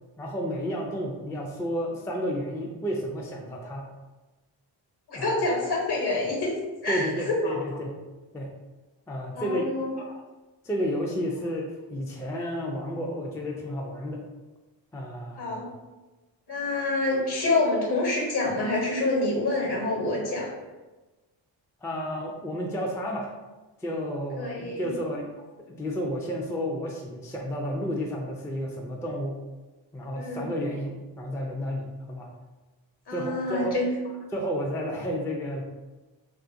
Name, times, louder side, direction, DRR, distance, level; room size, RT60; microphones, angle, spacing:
voice 1, 0.2-3.8 5.1-5.3 6.9-7.9 8.3-8.5 9.1-9.7 10.6-14.2 14.9-15.6 21.8-23.3 23.8-25.3 25.8-29.4 29.9-32.3 33.1-33.8 34.3-35.7, equal, 5° left, -1 dB, 0.3 m, -31 dB
voice 2, 5.1-6.6 6.8-7.5 9.4-9.9 15.4-15.6 16.5-20.5 24.4-24.9 30.1-30.5 33.1-33.9, left 2 dB, 50° left, -1 dB, 1.1 m, -27 dB
2.7 x 2.5 x 2.6 m, 1.2 s
supercardioid pair, 55°, 49 cm